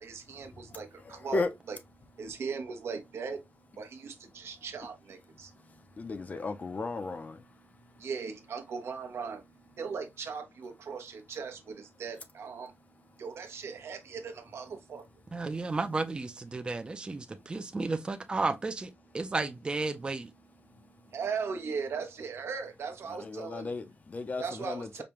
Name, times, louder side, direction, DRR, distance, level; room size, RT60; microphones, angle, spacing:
voice 1, 0.0-1.8 2.1-3.4 3.8-6.7 7.6-12.7 13.2-15.1 20.2-20.4 20.6-23.7 24.4-25.0, right 5 dB, 75° right, 0.8 m, -39 dB
voice 2, 1.1-1.5 6.0-7.4 23.2-25.0, left 3 dB, 35° left, 0.5 m, -35 dB
voice 3, 15.3-20.3, right 3 dB, 20° right, 0.4 m, -33 dB
5.0 x 2.2 x 2.9 m
wide cardioid pair, 175°, 4 cm